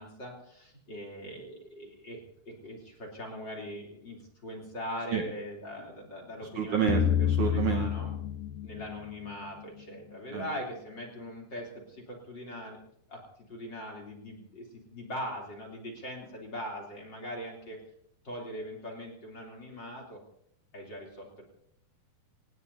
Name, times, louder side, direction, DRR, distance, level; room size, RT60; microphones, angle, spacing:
voice 1, 0.0-2.2 2.5-4.2 4.4-6.9 7.2-8.1 8.6-12.8 13.1-13.2 13.5-14.7 14.9-17.8 18.2-20.2 20.7-21.4, equal, 30° left, 0 dB, 3.6 m, -41 dB
voice 2, 6.6-7.9 10.3-10.4, right 7 dB, 60° right, 2 dB, 2.4 m, -29 dB
sound 1, 6.9-9.8, left 9 dB, 90° left, 1.7 m, -29 dB
26.5 x 18.5 x 2.8 m, 0.71 s
omnidirectional pair, 4.5 m